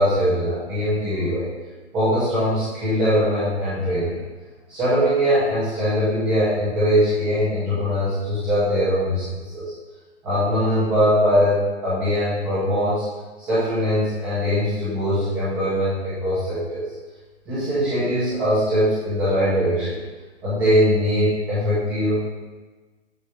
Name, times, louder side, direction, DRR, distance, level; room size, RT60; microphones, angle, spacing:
voice 1, 0.0-1.5 1.9-4.2 4.7-9.7 10.2-13.0 13.4-16.9 17.5-20.0 20.4-22.2, equal, 5° right, -12 dB, 0.8 m, -21 dB
10.0 x 9.7 x 3.4 m, 1.3 s
hypercardioid pair, 180°, 35 cm